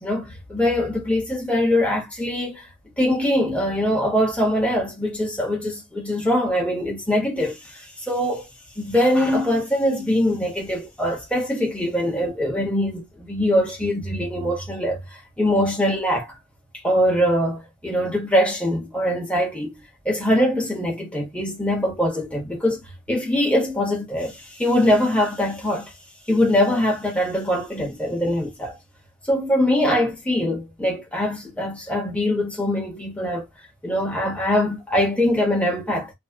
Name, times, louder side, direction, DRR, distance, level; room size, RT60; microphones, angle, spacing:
voice 1, 0.0-2.7 3.0-8.5 8.8-16.4 16.8-19.7 20.0-25.9 26.3-28.8 29.3-33.4 33.8-36.1, left 1 dB, 5° left, 1.0 m, -22 dB
2.7 x 2.1 x 3.4 m
head